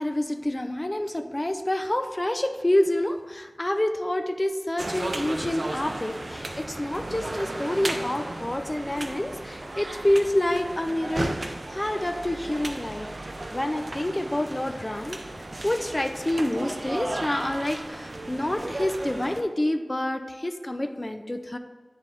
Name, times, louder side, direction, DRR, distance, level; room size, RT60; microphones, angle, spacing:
voice 1, 0.0-13.1 13.5-15.2 15.6-21.6, left 1 dB, 30° left, 8 dB, 0.5 m, -27 dB
sound 1, 4.8-19.4, right 2 dB, 55° right, 0.5 m, -35 dB
9.6 x 3.5 x 3.7 m, 1.5 s
wide cardioid pair, 45°, 0 cm